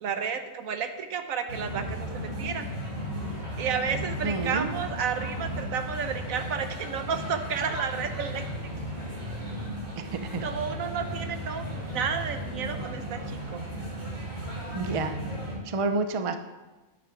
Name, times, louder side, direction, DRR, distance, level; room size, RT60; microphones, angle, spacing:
voice 1, 0.0-2.7 3.6-8.4 10.4-13.6, right 6 dB, 75° right, 8 dB, 1.2 m, -31 dB
sound 1, 1.5-15.6, equal, 35° right, 3.1 m, -35 dB
voice 2, 4.2-4.7 10.0-10.5 14.7-15.1 15.6-16.4, right 3 dB, 55° right, 8 dB, 0.3 m, -29 dB
9.5 x 8.7 x 5.0 m, 1.2 s
omnidirectional pair, 1.4 m